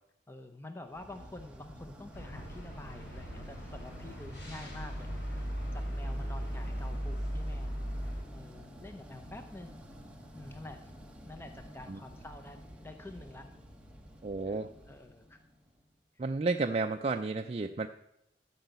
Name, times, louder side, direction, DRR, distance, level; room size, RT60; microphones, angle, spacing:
voice 1, 0.3-7.8 8.3-9.8 10.4-10.9 11.3-13.5 14.4-14.6 14.9-15.4, left 2 dB, 15° left, 6 dB, 0.6 m, -48 dB
sound 1, 0.9-15.9, equal, 5° right, 1.1 m, -50 dB
sound 2, 2.1-8.2, equal, 65° left, 3.5 m, -38 dB
voice 2, 14.2-14.7 16.2-17.9, right 3 dB, 35° right, 5 dB, 0.4 m, -32 dB
13.0 x 5.6 x 8.0 m, 0.86 s
head